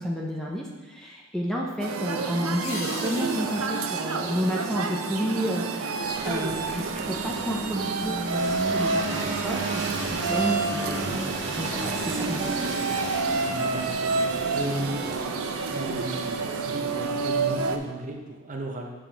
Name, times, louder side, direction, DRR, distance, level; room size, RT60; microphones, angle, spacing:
voice 1, 0.0-12.7, equal, ahead, -2 dB, 0.6 m, -31 dB
sound 1, 1.8-17.8, right 4 dB, 80° right, 0.5 m, -29 dB
sound 2, 2.6-5.2, left 2 dB, 75° left, 1.6 m, -41 dB
sound 3, 6.0-17.7, right 2 dB, 55° right, 1.0 m, -33 dB
voice 2, 13.5-15.1 15.6-18.9, right 1 dB, 35° right, 2 dB, 0.7 m, -35 dB
7.1 x 5.3 x 3.3 m, 1.2 s
head